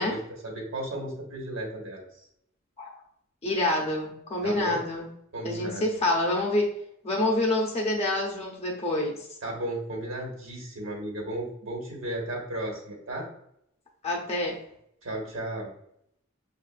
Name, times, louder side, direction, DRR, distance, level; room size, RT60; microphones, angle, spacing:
voice 1, 0.0-2.3 4.4-4.8 5.3-5.9 9.4-13.3 15.0-15.7, right 1 dB, 65° right, -1 dB, 1.3 m, -34 dB
voice 2, 3.4-5.1 5.4-6.7 7.0-9.2 14.0-14.6, left 1 dB, 30° left, 0 dB, 0.7 m, -27 dB
6.3 x 2.4 x 2.4 m, 0.73 s
head